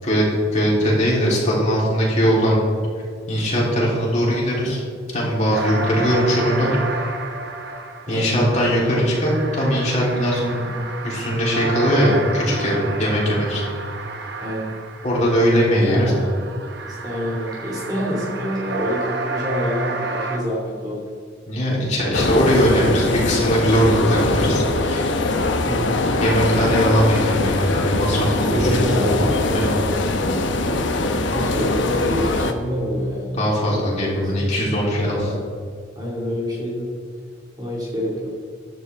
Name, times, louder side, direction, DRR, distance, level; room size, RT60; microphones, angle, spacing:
voice 1, 0.0-2.6 3.3-4.8 5.1-6.7 8.1-10.6 11.0-13.6 15.0-16.1 21.5-25.1 26.2-29.1 29.5-29.8 33.4-35.3, equal, 35° left, -5 dB, 3.7 m, -20 dB
sound 1, 5.5-15.5 15.8-20.4, right 3 dB, 55° right, 1.1 m, -31 dB
voice 2, 5.7-6.1 8.1-8.3 14.4-14.8 15.9-16.3 16.8-21.0 25.7-26.0 28.5-34.5 34.9-35.3 36.0-36.9 37.6-38.3, equal, 20° right, -4 dB, 2.3 m, -27 dB
sound 2, 22.1-32.5, left 2 dB, 65° left, 1.0 m, -22 dB
14.5 x 12.0 x 3.6 m, 2.2 s
head